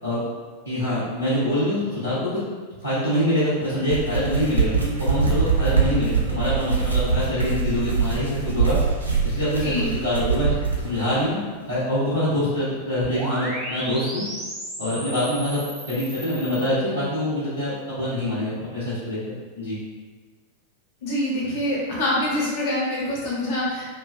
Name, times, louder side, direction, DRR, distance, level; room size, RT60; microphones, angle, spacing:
voice 1, 0.6-2.4 2.8-10.5 10.8-11.4 11.7-14.2 14.8-15.6 15.9-19.2 19.6-19.8, left 1 dB, 85° left, -14 dB, 0.7 m, -25 dB
sound 1, 3.7-10.9, right 5 dB, 80° right, 0.4 m, -23 dB
sound 2, 13.0-16.6, equal, 10° right, 0.6 m, -34 dB
voice 2, 21.0-23.9, left 1 dB, 45° left, -7 dB, 0.9 m, -25 dB
2.3 x 2.3 x 2.3 m, 1.5 s
figure-of-eight pair, 90°, 0 cm